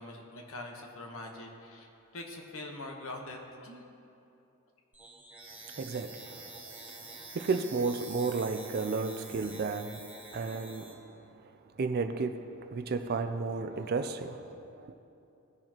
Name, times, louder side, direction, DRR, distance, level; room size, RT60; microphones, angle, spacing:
voice 1, 0.0-3.9, left 2 dB, 65° left, 1.2 m, -43 dB
sound 1, 4.9-10.9, right 3 dB, 5° right, 0.9 m, -47 dB
voice 2, 5.7-10.1 10.3-11.4 11.8-14.9, right 4 dB, 45° right, 0.4 m, -33 dB
17.0 x 6.4 x 3.0 m
head